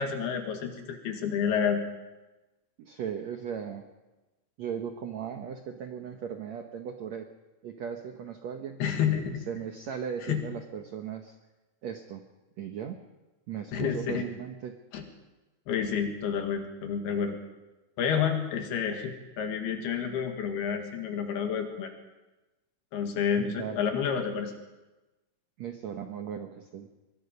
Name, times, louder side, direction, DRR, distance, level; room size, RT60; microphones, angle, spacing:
voice 1, 0.0-1.8 8.8-9.4 10.3-10.4 13.7-14.3 14.9-15.0 15.7-17.4 18.0-21.9 22.9-24.5, left 7 dB, 75° left, 5 dB, 3.9 m, -29 dB
voice 2, 2.8-3.9 4.6-7.3 7.6-8.8 9.5-11.3 11.8-12.2 12.6-13.0 13.5-14.8 23.4-23.9 25.6-26.9, right 8 dB, 75° right, 5 dB, 1.6 m, -37 dB
23.5 x 22.0 x 5.3 m, 1.1 s
omnidirectional pair, 4.7 m